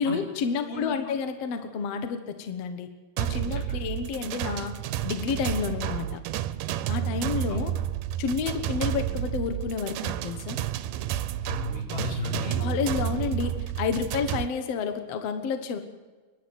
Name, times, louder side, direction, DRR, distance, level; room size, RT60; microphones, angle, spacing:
voice 1, 0.0-2.9 3.2-4.8 5.0-6.2 6.9-7.7 8.2-10.6 12.6-15.8, left 6 dB, 60° left, 8 dB, 2.1 m, -30 dB
voice 2, 0.7-1.0 3.5-3.8 7.5-7.6 11.4-12.7, left 2 dB, 85° left, 0 dB, 5.7 m, -34 dB
sound 1, 3.2-14.5, right 12 dB, 85° right, 2.3 m, -31 dB
28.5 x 11.5 x 7.9 m, 1.4 s
omnidirectional pair, 3.6 m